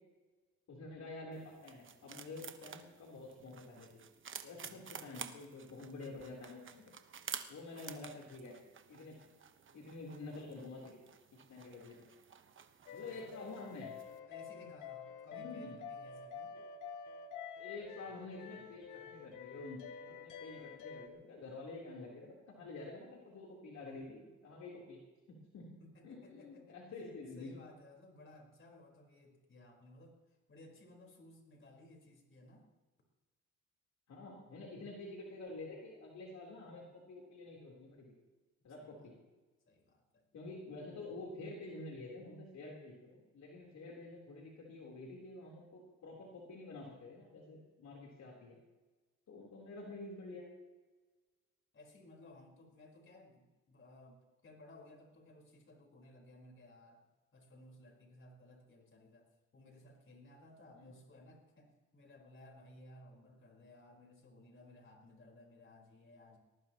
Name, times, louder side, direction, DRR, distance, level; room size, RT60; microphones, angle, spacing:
voice 1, 0.7-4.0 4.4-6.9 7.5-8.5 8.9-9.2 9.7-11.0 11.5-12.1 12.9-13.9 15.3-15.8 16.5-16.6 17.6-25.0 25.3-25.7 26.0-27.5 34.1-38.1 38.6-39.1 40.3-48.6 49.3-50.5 60.8-60.9, left 2 dB, 65° left, -2 dB, 3.7 m, -49 dB
sound 1, 1.3-14.2, right 7 dB, 40° right, 1.1 m, -51 dB
voice 2, 4.6-5.2 13.1-13.3 14.2-16.6 25.8-32.7 38.8-39.1 39.7-40.3 51.7-57.0 57.3-66.4, left 1 dB, 40° left, 1 dB, 4.5 m, -59 dB
sound 2, 12.9-21.1, left 6 dB, 90° left, 1.2 m, -49 dB
20.0 x 18.5 x 3.0 m, 1.2 s
cardioid pair, 90°, 30 cm